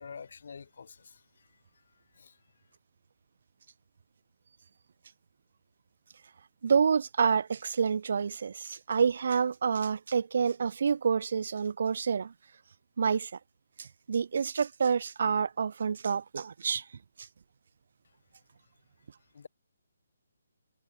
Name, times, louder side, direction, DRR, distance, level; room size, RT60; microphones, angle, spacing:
voice 1, 0.0-1.5 2.1-2.4 19.3-19.5, left 6 dB, 60° left, 7.7 m, -47 dB
voice 2, 6.6-12.3 13.0-13.3 13.8-16.8, right 6 dB, 60° right, 1.8 m, -28 dB
figure-of-eight pair, 150°, 0 cm